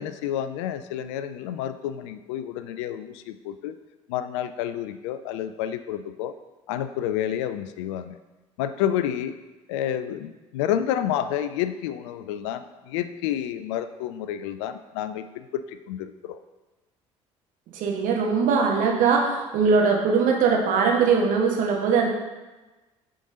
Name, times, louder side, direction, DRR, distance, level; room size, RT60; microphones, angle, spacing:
voice 1, 0.0-3.7 4.1-6.3 6.7-8.2 8.6-9.3 9.7-16.4, left 10 dB, 65° left, 11 dB, 0.4 m, -29 dB
voice 2, 17.7-22.1, right 5 dB, 55° right, 0 dB, 1.3 m, -21 dB
8.3 x 3.8 x 3.8 m, 1.1 s
figure-of-eight pair, 55°, 16 cm